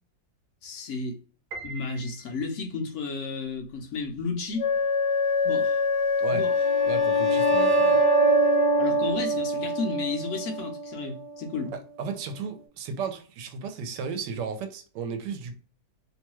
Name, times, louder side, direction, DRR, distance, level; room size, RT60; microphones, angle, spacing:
voice 1, 0.6-1.2 1.6-4.7 5.4-5.8 6.3-6.5 7.8-8.0 8.8-11.7, left 4 dB, 65° left, 0.8 m, -33 dB
Piano, 1.5-2.8, right 3 dB, 70° right, 1.1 m, -42 dB
Wind instrument woodwind instrument, 4.6-9.2, left 5 dB, 80° left, 1.2 m, -24 dB
sound 1, 6.4-11.7, right 5 dB, 20° right, 0.3 m, -26 dB
voice 2, 6.9-8.0 11.7-15.5, right 5 dB, 90° right, 1.2 m, -34 dB
3.0 x 2.2 x 2.9 m
omnidirectional pair, 1.8 m